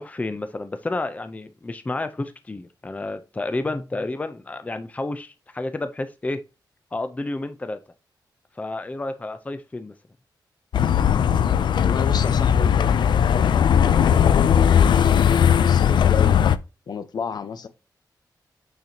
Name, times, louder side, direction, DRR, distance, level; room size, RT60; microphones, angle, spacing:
voice 1, 0.0-6.4 6.9-7.8 8.6-9.9, left 2 dB, 20° left, 0.6 m, -30 dB
sound 1, 10.7-16.6, left 8 dB, 80° left, 0.4 m, -18 dB
voice 2, 11.8-16.4 16.9-17.7, left 6 dB, 65° left, 0.9 m, -32 dB
6.7 x 6.6 x 2.9 m
wide cardioid pair, 145°, 8 cm